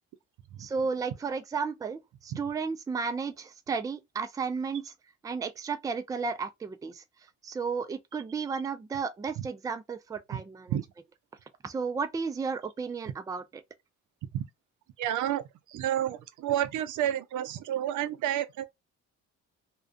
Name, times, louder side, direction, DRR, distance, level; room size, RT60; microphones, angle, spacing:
voice 1, 0.6-4.9 5.2-7.0 7.4-10.7 11.6-13.6, right 5 dB, 10° right, 0.3 m, -33 dB
voice 2, 15.0-15.4 15.7-18.6, right 11 dB, 80° right, 0.5 m, -30 dB
2.3 x 2.2 x 2.3 m
cardioid pair, 90°, 30 cm